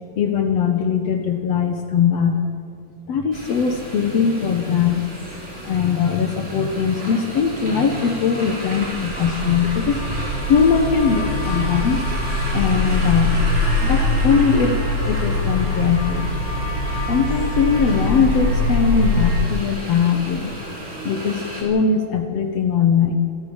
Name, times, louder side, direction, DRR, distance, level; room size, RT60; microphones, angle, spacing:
voice 1, 0.2-2.4 3.1-5.3 5.6-12.1 12.5-13.4 13.8-16.3 17.1-20.5 21.1-23.1, left 6 dB, 60° left, 5 dB, 1.9 m, -20 dB
sound 1, 3.3-21.6, right 1 dB, 20° right, 4.3 m, -33 dB
sound 2, 8.9-19.4, left 1 dB, 10° left, 5.4 m, -23 dB
26.5 x 14.0 x 7.2 m, 2.4 s
omnidirectional pair, 4.0 m